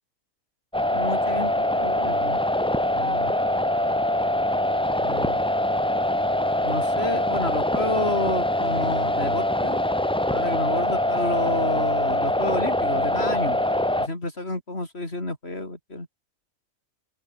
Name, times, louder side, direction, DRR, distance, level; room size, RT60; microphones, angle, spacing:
sound 1, 0.7-14.1, left 1 dB, 5° left, 0.6 m, -24 dB
voice 1, 0.9-2.4 2.9-3.3 5.0-5.4 6.6-9.8 10.3-13.6 14.0-16.1, left 2 dB, 45° left, 6.1 m, -30 dB
open air
omnidirectional pair, 1.5 m